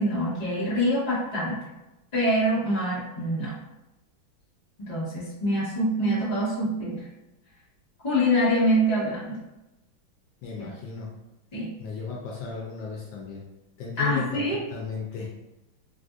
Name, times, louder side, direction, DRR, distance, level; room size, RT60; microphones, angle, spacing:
voice 1, 0.0-1.6 2.1-3.5 4.8-7.0 8.0-9.4 11.5-11.7 14.0-14.6, equal, 25° left, -9 dB, 1.2 m, -25 dB
voice 2, 10.4-11.1 11.8-13.4 13.8-15.3, left 5 dB, 75° left, -3 dB, 1.3 m, -34 dB
3.4 x 2.5 x 2.5 m, 0.97 s
omnidirectional pair, 2.1 m